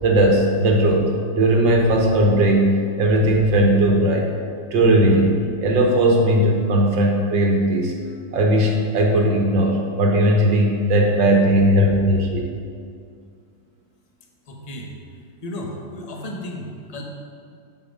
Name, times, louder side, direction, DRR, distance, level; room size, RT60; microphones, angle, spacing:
voice 1, 0.0-4.3 4.7-5.3 5.6-7.9 8.3-12.5, right 1 dB, 70° right, 1 dB, 1.7 m, -17 dB
voice 2, 14.4-17.0, left 1 dB, 30° left, 0 dB, 0.7 m, -34 dB
8.1 x 6.7 x 5.3 m, 2.3 s
omnidirectional pair, 2.2 m